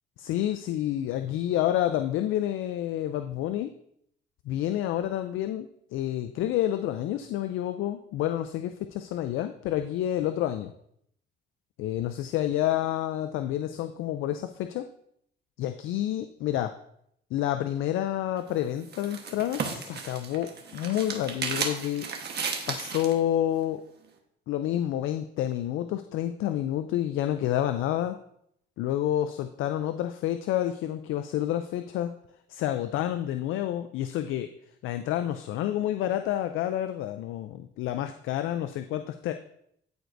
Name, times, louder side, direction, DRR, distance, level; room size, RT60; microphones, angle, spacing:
voice 1, 0.2-3.7 4.5-5.7 5.9-10.7 11.8-14.9 15.6-16.7 17.3-22.1 22.7-23.8 24.5-28.2 28.8-32.1 32.5-34.5 34.8-39.3, left 12 dB, 90° left, 8 dB, 0.4 m, -29 dB
sound 1, 18.4-23.2, right 5 dB, 55° right, 1.3 m, -34 dB
13.0 x 4.5 x 2.6 m, 0.71 s
cardioid pair, 90°, 20 cm